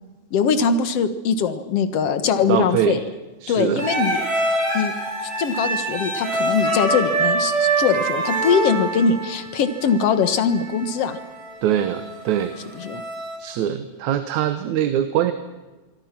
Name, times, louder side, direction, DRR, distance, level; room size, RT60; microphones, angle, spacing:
voice 1, 0.3-3.0 3.5-4.2 4.7-4.9 5.4-11.2 12.8-13.0, left 6 dB, 60° left, 10 dB, 2.4 m, -21 dB
voice 2, 2.5-3.0 3.4-3.9 11.6-12.6 13.4-15.3, right 10 dB, 80° right, 10 dB, 2.5 m, -22 dB
sound 1, 3.8-13.4, right 2 dB, 55° right, 7.6 m, -25 dB
26.5 x 24.0 x 6.0 m, 1.1 s
omnidirectional pair, 3.3 m